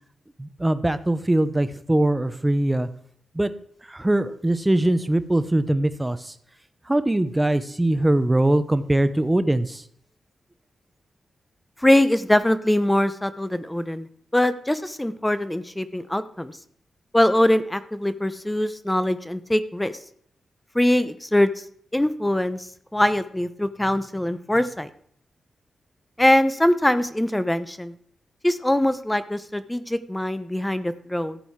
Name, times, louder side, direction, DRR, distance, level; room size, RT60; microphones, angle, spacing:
voice 1, 0.4-2.9 3.3-3.5 3.9-6.3 6.9-9.8, right 1 dB, 15° right, 12 dB, 0.9 m, -22 dB
voice 2, 11.8-14.1 14.3-16.6 17.1-19.9 20.7-21.6 21.9-24.9 26.2-28.0 28.4-31.4, left 1 dB, 10° left, 13 dB, 0.8 m, -22 dB
14.0 x 7.8 x 4.8 m, 0.65 s
cardioid pair, 75°, 0 cm